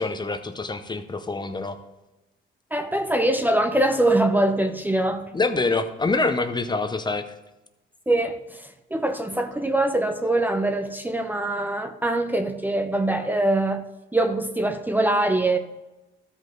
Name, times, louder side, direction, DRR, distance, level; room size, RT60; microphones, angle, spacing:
voice 1, 0.0-1.8 5.3-7.2, left 3 dB, 20° left, 0.7 m, -25 dB
voice 2, 2.7-5.3 8.1-13.8 14.1-15.6, right 1 dB, 10° right, 0.6 m, -23 dB
13.0 x 5.3 x 3.9 m
cardioid pair, 90°, 20 cm